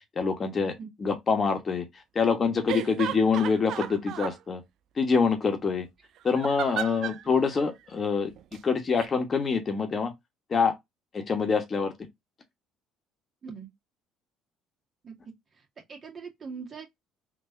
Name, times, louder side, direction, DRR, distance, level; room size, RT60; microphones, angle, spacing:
voice 1, 0.2-0.7 1.0-1.8 2.1-4.6 5.0-5.9 6.2-8.3 8.6-10.1 10.5-10.7 11.1-11.9, left 5 dB, 40° left, 1.2 m, -25 dB
sound 1, 2.7-4.4 6.3-7.2 8.4-8.6 9.0-9.1, right 10 dB, 60° right, 0.4 m, -34 dB
voice 2, 15.5-16.9, right 5 dB, 40° right, 1.8 m, -41 dB
3.6 x 2.8 x 2.6 m
hypercardioid pair, 55°, 0 cm